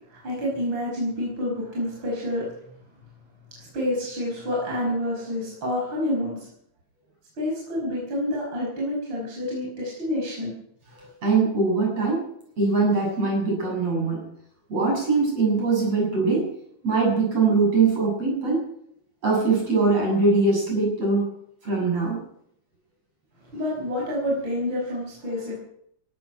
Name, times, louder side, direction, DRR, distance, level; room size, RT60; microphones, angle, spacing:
voice 1, 0.1-2.5 3.6-6.5 7.4-10.5 10.9-11.1 23.5-25.6, left 1 dB, 40° right, -4 dB, 6.0 m, -28 dB
voice 2, 11.2-12.2 12.6-14.2 14.7-16.5 16.8-18.6 19.2-21.3 21.6-22.2, right 3 dB, 55° right, -1 dB, 8.4 m, -22 dB
17.5 x 12.5 x 5.6 m, 0.69 s
omnidirectional pair, 3.3 m